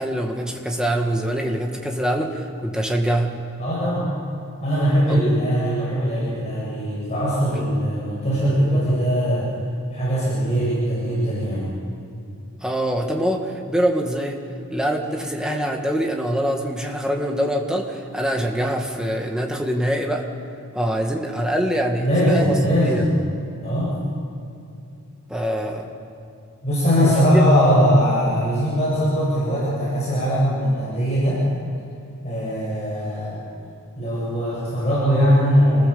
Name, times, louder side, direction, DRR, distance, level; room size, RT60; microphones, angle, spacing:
voice 1, 0.0-3.3 5.1-5.3 7.5-7.7 12.6-14.4 14.7-20.3 20.7-23.1 25.3-25.9 27.0-27.4, equal, 5° right, 1 dB, 1.9 m, -24 dB
voice 2, 3.6-4.1 4.6-9.5 9.9-11.7 22.0-23.1 23.6-23.9 26.6-31.4 32.2-33.4 34.0-35.9, equal, 30° left, -8 dB, 7.9 m, -20 dB
28.0 x 20.5 x 7.0 m, 2.6 s
head